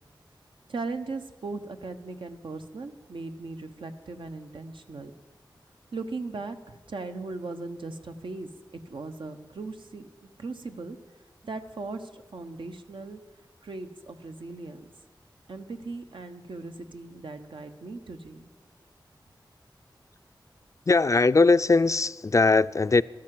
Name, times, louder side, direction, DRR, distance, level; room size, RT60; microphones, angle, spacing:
voice 1, 0.7-5.1 5.9-11.0 11.4-13.2 13.6-14.9 15.5-18.5, right 3 dB, 85° right, 1.0 m, -38 dB
voice 2, 20.9-23.0, left 3 dB, 40° left, 0.4 m, -20 dB
12.5 x 12.5 x 7.7 m
wide cardioid pair, 80°, 8 cm